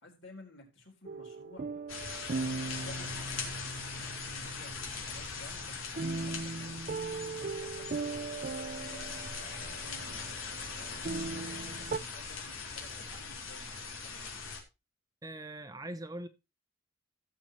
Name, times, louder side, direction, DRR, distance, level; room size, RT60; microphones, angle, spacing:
voice 1, 0.0-1.7 2.2-5.8 6.2-10.3 10.7-14.4, left 1 dB, 65° left, 3.9 m, -54 dB
sound 1, 1.0-12.0, right 4 dB, 40° right, 0.5 m, -39 dB
sound 2, 1.9-14.6, left 5 dB, 90° left, 3.3 m, -41 dB
voice 2, 15.2-16.3, right 1 dB, 20° right, 0.8 m, -41 dB
16.5 x 7.2 x 3.0 m
head